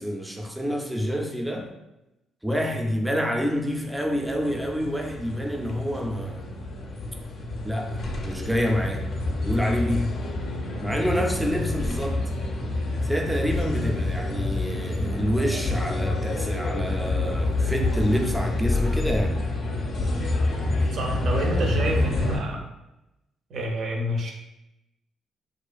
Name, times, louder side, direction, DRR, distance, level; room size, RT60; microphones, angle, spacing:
voice 1, 0.0-1.7 2.4-6.5 7.6-9.1 9.4-10.2 10.8-12.2 13.0-19.4, equal, 5° right, 2 dB, 0.4 m, -27 dB
sound 1, 3.7-22.4, left 2 dB, 65° left, 0.5 m, -28 dB
voice 2, 20.9-22.6 23.5-24.3, right 1 dB, 65° right, 1 dB, 0.5 m, -28 dB
2.4 x 2.4 x 2.3 m, 0.94 s
cardioid pair, 90°, 0 cm